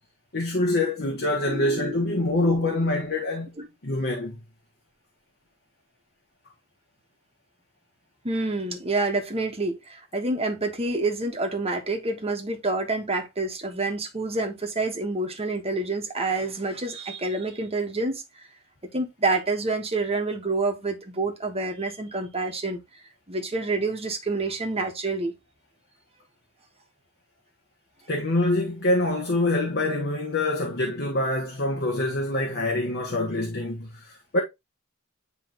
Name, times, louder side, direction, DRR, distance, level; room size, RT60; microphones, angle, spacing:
voice 1, 0.3-3.5 3.8-4.3 28.1-34.4, left 2 dB, 50° left, 1.3 m, -25 dB
voice 2, 1.4-3.0 3.6-3.7 8.2-18.5 18.9-22.8 23.3-25.3, right 3 dB, 30° right, 1.3 m, -28 dB
9.9 x 3.3 x 2.9 m
head